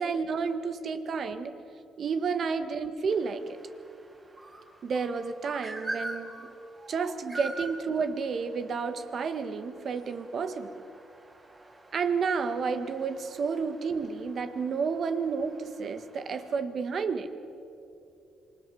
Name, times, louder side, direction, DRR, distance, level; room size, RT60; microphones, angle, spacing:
voice 1, 0.0-1.6 2.0-3.6 4.8-6.3 6.9-10.7 11.9-17.3, right 5 dB, 55° right, 9 dB, 1.6 m, -31 dB
sound 1, 3.1-16.6, right 1 dB, 25° right, 4.3 m, -45 dB
27.0 x 21.5 x 7.1 m, 2.7 s
cardioid pair, 90°, 0 cm